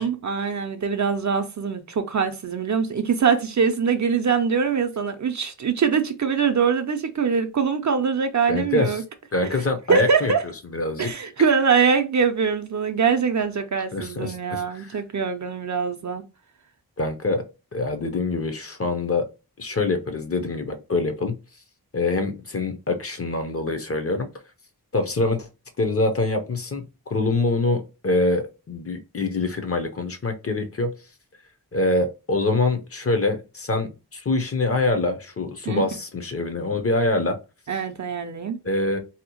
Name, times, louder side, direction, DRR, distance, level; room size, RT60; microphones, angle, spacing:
voice 1, 0.0-9.0 9.9-10.4 11.0-16.2 35.7-35.8 37.7-38.6, right 6 dB, 50° right, 0.5 m, -23 dB
voice 2, 8.5-9.0 9.3-10.3 10.7-11.1 13.9-15.0 17.0-17.4 17.7-19.3 19.6-21.4 21.9-24.3 24.9-25.5 25.8-30.9 31.7-37.4 38.6-39.0, left 2 dB, 35° left, 0.6 m, -25 dB
2.8 x 2.0 x 2.8 m
wide cardioid pair, 55°, 39 cm